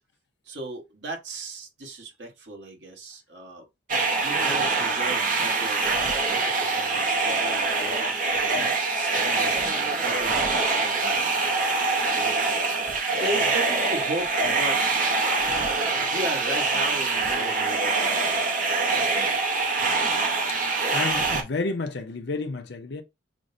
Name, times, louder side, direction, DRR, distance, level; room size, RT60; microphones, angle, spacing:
voice 1, 0.5-3.6 4.0-7.7 8.3-11.4 12.5-12.7 13.1-14.8 15.1-15.5 15.9-18.3, right 1 dB, 65° right, 1.2 m, -36 dB
sound 1, 3.9-21.4, right 3 dB, 45° right, 0.7 m, -24 dB
voice 2, 20.9-23.0, left 3 dB, 65° left, 0.6 m, -30 dB
6.1 x 2.1 x 2.6 m
head